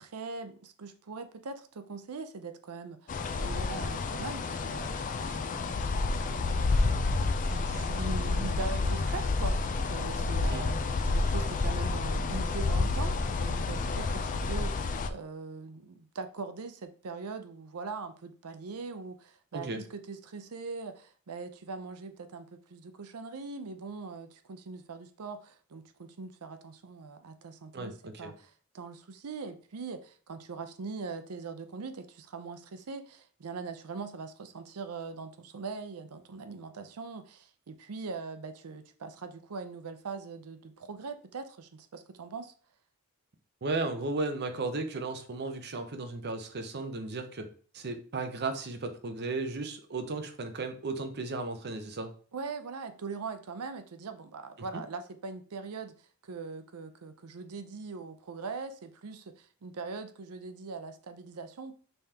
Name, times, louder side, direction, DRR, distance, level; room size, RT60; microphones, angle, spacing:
voice 1, 0.0-3.1 3.4-6.9 7.4-10.8 11.0-42.5 52.3-55.9 56.2-61.7, right 4 dB, 85° right, 9 dB, 0.6 m, -41 dB
sound 1, 3.1-15.1, left 3 dB, 35° left, 0.4 m, -29 dB
voice 2, 27.7-28.3 43.6-47.5 47.7-52.1 54.7-54.8, right 3 dB, 50° right, 7 dB, 0.7 m, -35 dB
5.4 x 3.4 x 2.8 m, 0.42 s
head